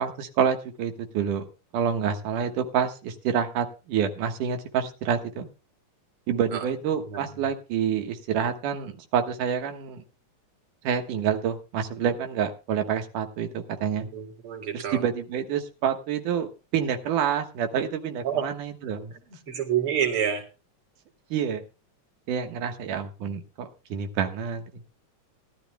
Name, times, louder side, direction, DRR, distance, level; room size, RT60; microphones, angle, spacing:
voice 1, 0.0-1.5 1.7-5.5 6.3-10.0 10.8-14.1 14.7-19.1 21.3-21.6 22.3-24.8, right 8 dB, 90° right, 5 dB, 2.9 m, -28 dB
voice 2, 14.1-15.0 18.2-18.4 19.5-20.4, right 9 dB, 45° right, 4 dB, 3.1 m, -27 dB
19.5 x 12.5 x 2.2 m, 0.30 s
omnidirectional pair, 3.5 m